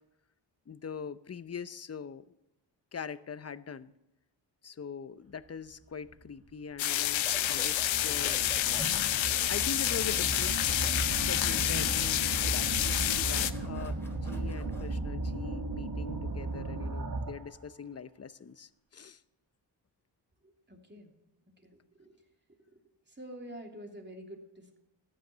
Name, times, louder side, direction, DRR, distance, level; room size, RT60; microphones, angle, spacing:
voice 1, 0.7-2.3 2.9-3.9 4.6-8.6 9.2-19.2, left 6 dB, 30° left, 15 dB, 0.7 m, -42 dB
sound 1, 6.1-6.2 6.9-17.6, right 2 dB, 50° right, 2.2 m, -36 dB
sound 2, 6.8-13.5, left 12 dB, 80° left, 0.7 m, -29 dB
sound 3, 7.2-15.0, equal, 5° left, 3.9 m, -47 dB
voice 2, 20.4-21.1 21.5-22.1 23.1-24.8, equal, 25° right, 2 dB, 3.0 m, -48 dB
14.0 x 10.5 x 6.8 m, 0.90 s
cardioid pair, 45°, 46 cm